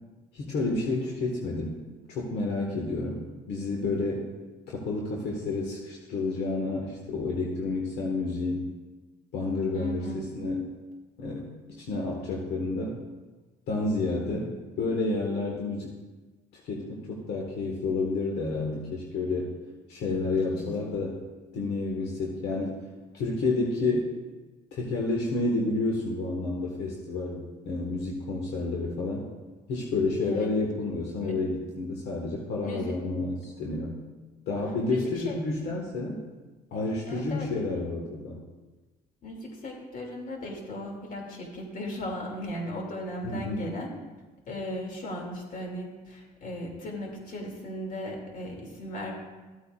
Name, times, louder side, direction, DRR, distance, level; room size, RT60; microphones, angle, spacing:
voice 1, 0.3-1.8 2.1-4.3 4.7-8.7 9.3-10.7 11.2-11.5 11.8-13.0 13.7-14.5 14.8-15.9 16.6-19.5 19.9-21.2 21.5-22.7 23.1-24.1 24.7-29.2 29.7-34.0 34.5-36.2 36.7-38.4 43.2-43.7, left 3 dB, 80° left, -2 dB, 1.6 m, -30 dB
voice 2, 9.7-10.3 14.1-14.5 20.5-20.7 30.2-30.5 31.2-31.4 32.6-32.9 34.9-35.4 37.0-37.5 39.2-43.9 44.5-49.1, left 1 dB, 55° left, 0 dB, 2.5 m, -37 dB
14.5 x 8.5 x 2.4 m, 1.2 s
cardioid pair, 110°, 17 cm